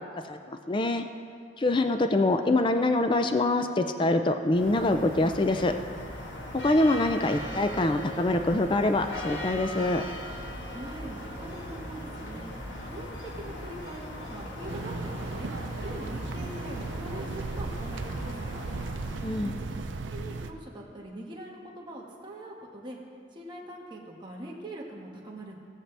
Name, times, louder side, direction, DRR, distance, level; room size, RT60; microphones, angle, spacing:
voice 1, 0.3-1.0 1.6-5.7 6.5-10.0 19.2-19.6, left 2 dB, 25° left, 7 dB, 0.4 m, -25 dB
sound 1, 4.5-20.0, left 1 dB, 85° left, 1.4 m, -39 dB
voice 2, 10.7-12.5 12.9-13.1 13.3-15.5 15.8-18.7 19.3-19.5 20.1-23.0 23.3-25.5, right 1 dB, 25° right, -3 dB, 1.5 m, -42 dB
sound 2, 14.7-20.5, right 3 dB, 80° right, 0.6 m, -36 dB
18.5 x 7.4 x 3.3 m, 2.3 s
head